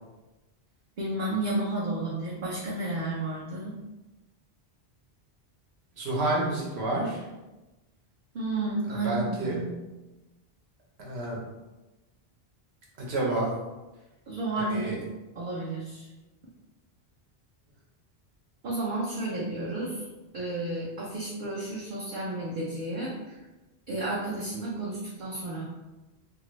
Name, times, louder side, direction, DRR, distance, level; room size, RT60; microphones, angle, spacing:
voice 1, 1.0-3.7 8.3-9.8 14.3-15.0 15.4-16.1 18.6-20.1 20.3-23.4 23.9-25.6, right 2 dB, 55° right, -6 dB, 0.7 m, -32 dB
voice 2, 6.0-7.2 9.0-9.6 11.0-11.4 13.1-13.5 14.6-14.9, right 2 dB, 80° right, -3 dB, 1.1 m, -29 dB
2.6 x 2.5 x 3.0 m, 1.1 s
omnidirectional pair, 1.1 m